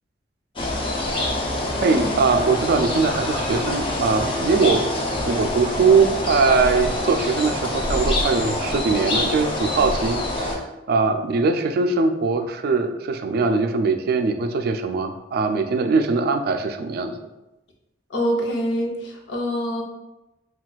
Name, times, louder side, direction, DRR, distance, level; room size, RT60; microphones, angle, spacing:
sound 1, 0.6-10.6, left 1 dB, 30° left, 0.5 m, -25 dB
voice 1, 1.8-4.8 5.3-10.6 10.9-17.2, right 4 dB, 55° right, 7 dB, 0.3 m, -21 dB
voice 2, 18.1-19.8, equal, 75° left, 1 dB, 0.6 m, -25 dB
4.0 x 2.3 x 2.3 m, 0.99 s
head